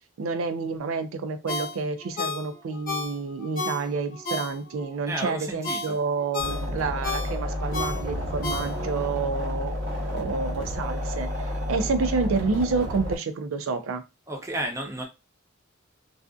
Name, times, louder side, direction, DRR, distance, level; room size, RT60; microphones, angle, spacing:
voice 1, 0.2-9.8 10.1-11.3 11.7-14.0, right 4 dB, 75° right, 0.4 m, -29 dB
Ringtone, 1.5-4.9 5.3-9.1 9.5-9.6, left 3 dB, 45° left, 0.8 m, -33 dB
voice 2, 5.1-6.0 14.3-15.1, right 1 dB, 15° right, 0.5 m, -32 dB
sound 1, 6.4-13.2, left 1 dB, 60° right, 0.9 m, -31 dB
2.4 x 2.4 x 2.3 m
head